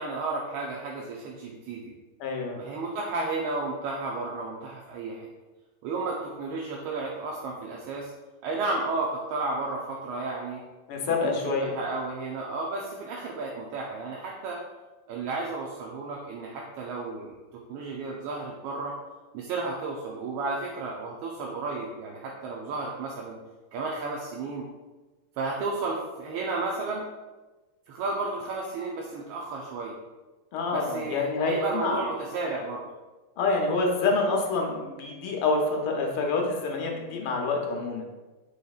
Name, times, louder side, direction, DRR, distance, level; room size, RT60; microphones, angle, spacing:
voice 1, 0.0-1.9 2.5-5.3 5.8-8.1 8.4-10.6 11.0-14.6 15.1-17.3 17.7-19.0 19.3-23.4 23.7-24.7 25.4-27.1 27.9-29.9 30.7-32.8, right 3 dB, 80° right, -2 dB, 1.4 m, -33 dB
voice 2, 2.2-2.5 10.9-11.7 30.5-32.0 33.4-38.0, left 3 dB, 85° left, 1 dB, 1.6 m, -27 dB
4.9 x 4.0 x 2.3 m, 1.2 s
omnidirectional pair, 2.3 m